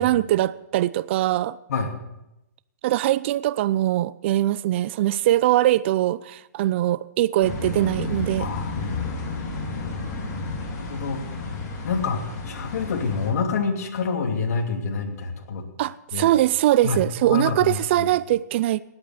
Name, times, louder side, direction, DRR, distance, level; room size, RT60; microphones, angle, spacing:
voice 1, 0.0-1.6 2.8-8.5 15.8-18.8, right 14 dB, 40° right, 0.4 m, -22 dB
sound 1, 7.4-13.3, left 3 dB, 30° left, 3.9 m, -31 dB
voice 2, 8.4-8.8 10.9-11.2 11.8-15.6 16.1-16.3 16.8-17.0 17.3-18.1, left 5 dB, 60° left, 2.8 m, -27 dB
18.0 x 8.7 x 6.5 m
hypercardioid pair, 150°, 9 cm